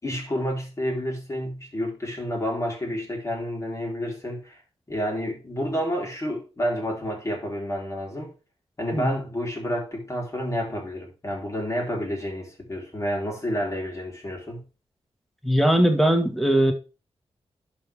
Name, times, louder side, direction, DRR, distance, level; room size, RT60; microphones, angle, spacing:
voice 1, 0.0-4.6 4.9-8.3 8.8-14.6, equal, 30° left, 4.1 m, -29 dB
voice 2, 15.4-16.7, right 1 dB, ahead, 1.8 m, -20 dB
12.0 x 5.1 x 3.6 m
wide cardioid pair, 90°, 11 cm